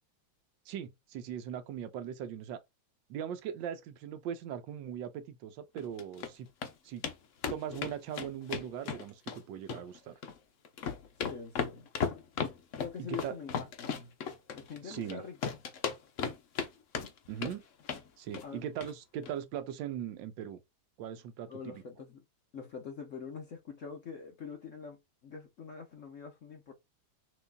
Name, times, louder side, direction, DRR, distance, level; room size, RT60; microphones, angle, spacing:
voice 1, 0.7-2.6 3.1-6.5 6.8-7.0 7.5-10.2 13.0-13.3 14.8-15.2 17.3-17.6 18.2-20.6 21.0-21.8, right 9 dB, 70° right, 1.3 m, -40 dB
sound 1, 5.8-6.3 6.6-6.7 7.0-7.2 7.4-9.4 9.7-10.4 10.6-15.1 15.4-16.7 16.9-17.5 17.8-18.1 18.3-18.5 18.8-18.9 19.2-19.3, left 6 dB, 85° left, 0.6 m, -35 dB
voice 2, 11.2-11.9 12.8-14.1 14.5-15.6 18.4-18.7 21.5-22.2 22.5-26.7, left 6 dB, 55° left, 0.9 m, -44 dB
6.2 x 3.0 x 2.2 m
omnidirectional pair, 2.3 m